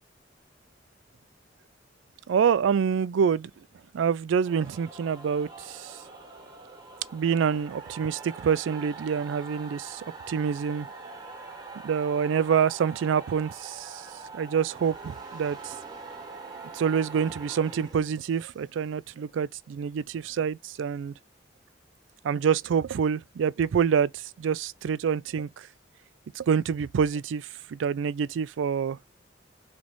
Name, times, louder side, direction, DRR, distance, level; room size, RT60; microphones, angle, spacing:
voice 1, 2.3-3.5 3.9-6.0 7.1-10.9 11.8-14.0 14.3-15.8 16.7-21.1 22.2-25.5 26.4-29.0, right 7 dB, 85° right, 0.3 m, -26 dB
sound 1, 4.4-18.6, right 4 dB, 20° right, 1.2 m, -43 dB
3.2 x 3.0 x 3.9 m
head